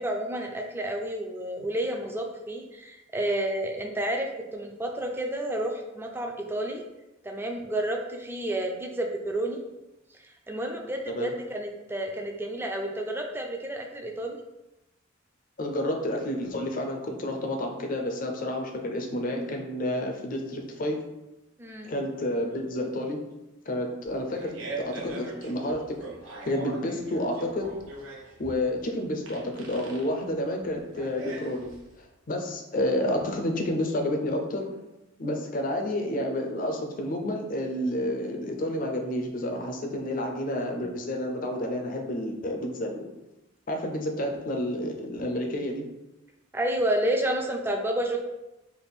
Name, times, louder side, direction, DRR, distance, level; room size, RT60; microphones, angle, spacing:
voice 1, 0.0-6.8 7.2-9.6 10.2-14.4 21.6-21.9 46.5-48.2, right 1 dB, 10° right, 2 dB, 0.4 m, -30 dB
voice 2, 15.6-21.0 21.8-23.2 23.7-24.5 24.8-25.8 26.4-27.7 28.4-31.7 32.0-34.6 35.2-43.0 43.7-45.8, left 1 dB, 45° left, 3 dB, 0.5 m, -30 dB
Fart, 24.0-32.0, right 3 dB, 80° right, 0.9 m, -41 dB
3.5 x 2.5 x 4.0 m, 0.96 s
head